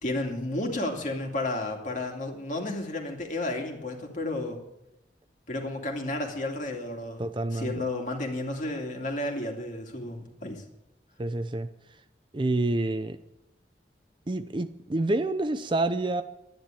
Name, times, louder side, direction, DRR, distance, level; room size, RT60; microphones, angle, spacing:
voice 1, 0.0-4.6 5.5-10.6, left 2 dB, 45° left, 2.5 m, -32 dB
voice 2, 7.2-7.8 11.2-11.7 12.3-13.2 14.3-16.2, right 2 dB, 25° right, 0.5 m, -28 dB
12.0 x 10.5 x 9.1 m
head